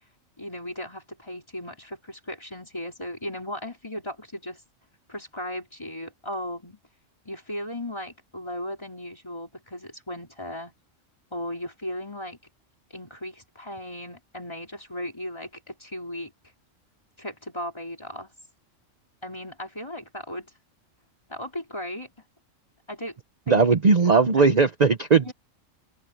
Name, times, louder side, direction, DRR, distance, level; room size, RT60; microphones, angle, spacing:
voice 1, 0.4-4.6 5.1-6.8 7.3-10.7 11.3-12.4 12.9-16.3 17.2-18.3 19.2-20.5 21.3-22.1 22.9-23.2 23.5-23.7 24.1-24.6 25.2-25.3, left 1 dB, 20° left, 3.9 m, -36 dB
voice 2, 23.5-25.3, right 4 dB, 35° right, 0.9 m, -18 dB
open air
omnidirectional pair, 1.3 m